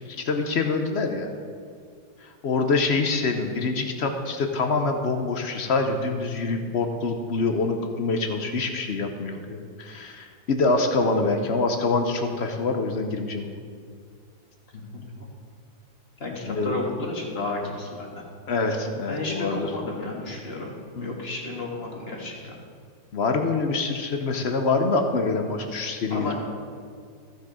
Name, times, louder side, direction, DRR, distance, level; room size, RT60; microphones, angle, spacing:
voice 1, 0.1-1.3 2.2-13.5 16.4-16.8 18.5-19.7 20.9-21.1 23.1-26.3, left 3 dB, 55° left, 5 dB, 0.7 m, -25 dB
voice 2, 14.7-15.3 16.2-18.2 19.1-20.7 21.0-22.6 26.1-26.3, left 2 dB, 35° left, -1 dB, 1.6 m, -32 dB
14.5 x 6.7 x 4.9 m, 2.1 s
omnidirectional pair, 2.0 m